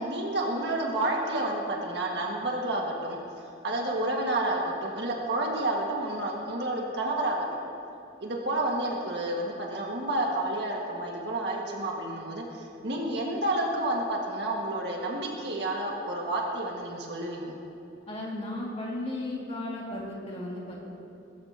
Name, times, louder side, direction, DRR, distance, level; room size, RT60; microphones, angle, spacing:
voice 1, 0.0-3.2 3.6-7.5 8.2-17.5, right 1 dB, 60° right, -2 dB, 1.8 m, -30 dB
voice 2, 18.1-20.8, left 1 dB, 30° left, -4 dB, 2.3 m, -35 dB
22.0 x 13.0 x 2.9 m, 2.8 s
head